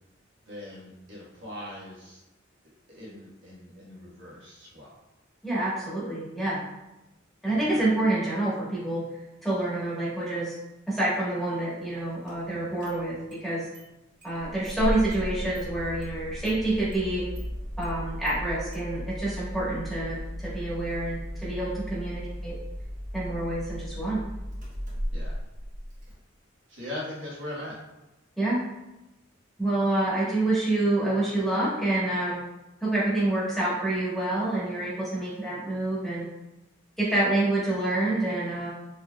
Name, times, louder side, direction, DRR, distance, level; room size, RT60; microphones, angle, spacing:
voice 1, 0.4-2.2 2.9-5.0 7.5-7.8 12.5-12.7 19.5-19.6 25.1-25.4 26.7-27.8, left 1 dB, 70° right, -6 dB, 1.2 m, -40 dB
voice 2, 5.4-6.6 7.4-9.0 9.4-10.5 10.9-13.7 14.2-17.2 17.8-22.5 23.1-24.2 28.4-28.6 29.6-32.4 32.8-36.2 37.0-38.7, right 2 dB, ahead, -9 dB, 1.2 m, -27 dB
Engine starting, 12.3-12.4 12.8-13.4 13.7-13.8 14.2-26.1, equal, 40° right, 0.8 m, -36 dB
4.2 x 2.9 x 2.2 m, 0.97 s
head